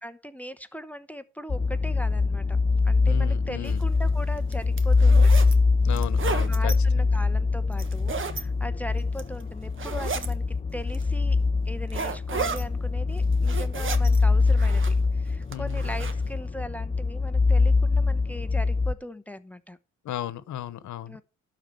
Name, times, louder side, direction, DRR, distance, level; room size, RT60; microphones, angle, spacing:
voice 1, 0.0-2.6 2.8-5.5 6.5-11.4 11.7-19.8 21.1-21.2, equal, 5° left, 1.0 m, -39 dB
sound 1, 1.5-18.9, left 4 dB, 20° left, 0.7 m, -23 dB
voice 2, 3.1-3.8 5.8-7.1 15.5-16.1 20.0-21.2, left 12 dB, 70° left, 1.1 m, -35 dB
sound 2, 3.7-3.8 4.4-5.5 5.9-6.8 7.7-8.4 9.0-9.4 9.8-10.3 10.9-11.0 11.9-12.6 13.2-14.2 14.5-15.1 15.5-16.1, right 5 dB, 40° right, 1.5 m, -33 dB
12.0 x 4.6 x 7.7 m
cardioid pair, 90°, 30 cm